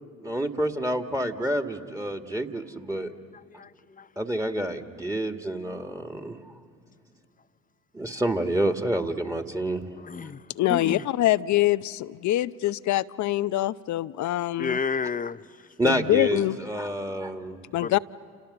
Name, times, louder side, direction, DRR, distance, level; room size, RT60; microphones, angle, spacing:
voice 1, 0.2-3.1 4.2-6.4 7.9-9.9 15.8-17.6, right 1 dB, 10° right, 2.1 m, -28 dB
voice 2, 10.0-10.4 10.7-11.0 14.6-15.4 17.8-18.0, left 5 dB, 25° left, 0.7 m, -30 dB
voice 3, 10.6-14.8 15.8-16.6 17.7-18.0, left 15 dB, 60° left, 0.7 m, -24 dB
29.5 x 29.0 x 6.9 m
hypercardioid pair, 55°, 33 cm